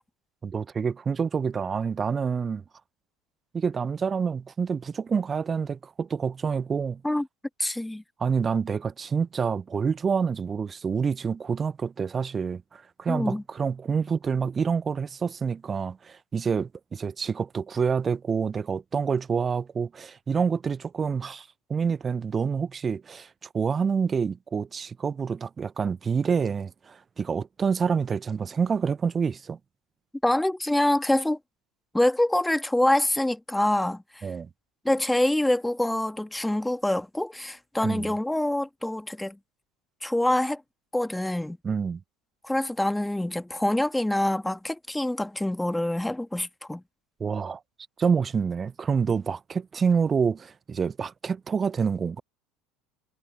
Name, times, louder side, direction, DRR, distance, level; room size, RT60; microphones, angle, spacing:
voice 1, 0.4-2.6 3.5-7.0 8.2-23.3 23.5-29.6 34.2-34.5 37.8-38.1 41.6-42.0 47.2-47.6 48.0-52.2, right 6 dB, 30° right, 0.8 m, -27 dB
voice 2, 7.6-8.0 13.1-13.4 30.2-31.4 31.9-34.2 34.8-39.4 40.0-40.6 40.9-41.6 42.4-46.8, left 1 dB, 5° left, 1.7 m, -25 dB
figure-of-eight pair, 70°, 0 cm